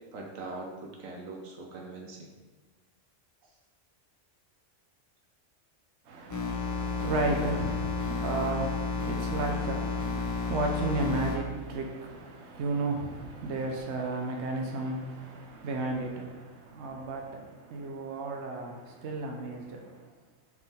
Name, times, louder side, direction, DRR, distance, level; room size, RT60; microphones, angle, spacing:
voice 1, 0.1-2.3, right 2 dB, 90° right, 0 dB, 1.4 m, -41 dB
voice 2, 6.0-20.1, right 2 dB, 65° right, 2 dB, 1.0 m, -34 dB
sound 1, 6.3-11.4, left 4 dB, 15° left, 0.8 m, -32 dB
5.8 x 4.7 x 3.6 m, 1.2 s
omnidirectional pair, 1.3 m